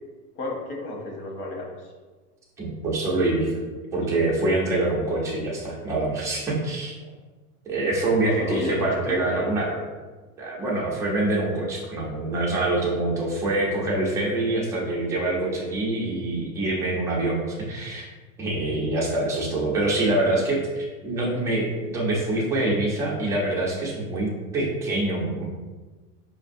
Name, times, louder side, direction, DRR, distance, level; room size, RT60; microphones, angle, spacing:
voice 1, 0.3-1.9 8.2-9.6 20.3-20.5, left 2 dB, 75° left, -1 dB, 1.2 m, -32 dB
voice 2, 2.6-3.5 3.9-7.0 7.7-9.8 10.4-18.1 18.4-25.4, right 2 dB, 10° right, -4 dB, 0.3 m, -25 dB
4.9 x 2.5 x 2.5 m, 1.3 s
hypercardioid pair, 120°, 45 cm